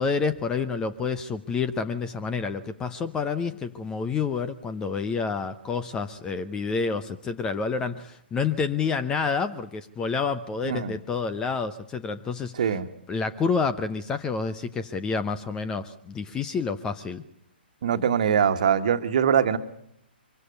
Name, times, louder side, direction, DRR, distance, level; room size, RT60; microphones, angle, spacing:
voice 1, 0.0-12.7 13.1-17.2, left 5 dB, 10° left, 12 dB, 0.8 m, -28 dB
voice 2, 10.6-10.9 12.6-12.9 17.8-19.6, right 8 dB, 45° right, 8 dB, 1.6 m, -22 dB
25.0 x 24.0 x 5.2 m, 0.72 s
figure-of-eight pair, 130°, 6 cm